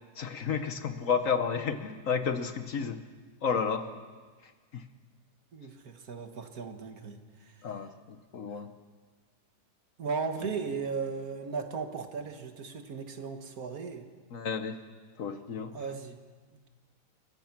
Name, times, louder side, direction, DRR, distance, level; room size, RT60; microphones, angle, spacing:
voice 1, 0.2-3.0 3.4-3.9 4.7-4.8 7.6-8.7 14.3-14.8 15.2-15.8, left 6 dB, 55° left, 9 dB, 1.2 m, -31 dB
voice 2, 5.5-7.8 8.5-8.6 10.0-14.1 15.7-16.2, right 5 dB, 60° right, 6 dB, 1.8 m, -37 dB
29.0 x 15.5 x 5.9 m, 1.5 s
omnidirectional pair, 1.8 m